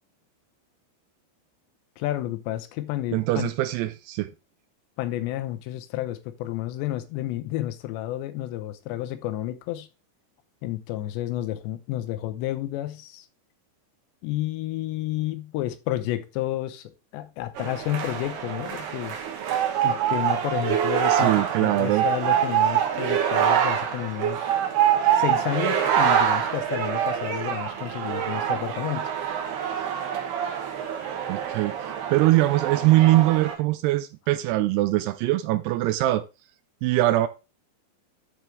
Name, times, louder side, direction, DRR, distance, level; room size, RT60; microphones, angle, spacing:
voice 1, 2.0-3.5 5.0-9.9 10.6-13.3 14.2-19.2 19.8-24.6 25.1-29.1, left 14 dB, 80° left, 2.9 m, -31 dB
voice 2, 3.1-4.3 21.1-22.1 31.3-36.2 36.8-37.3, right 16 dB, 85° right, 2.3 m, -22 dB
sound 1, 17.6-33.5, right 9 dB, 70° right, 3.4 m, -25 dB
12.0 x 4.5 x 3.3 m
omnidirectional pair, 5.1 m